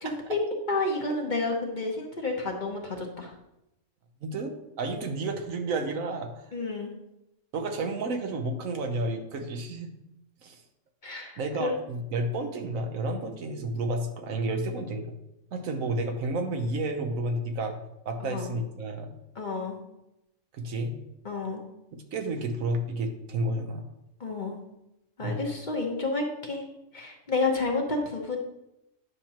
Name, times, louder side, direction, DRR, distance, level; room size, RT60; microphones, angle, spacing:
voice 1, 0.0-3.3 6.5-6.9 11.0-11.7 18.3-18.6 19.3-19.8 21.2-21.6 24.2-24.6 25.2-26.7 26.9-28.4, left 3 dB, 40° left, 1 dB, 1.0 m, -30 dB
voice 2, 4.2-6.5 7.5-9.9 10.4-10.6 11.4-15.1 15.5-17.8 18.0-19.1 20.5-21.0 21.9-23.9 25.2-25.5, right 2 dB, 80° right, 5 dB, 1.3 m, -31 dB
9.5 x 5.9 x 2.9 m, 0.88 s
omnidirectional pair, 1.4 m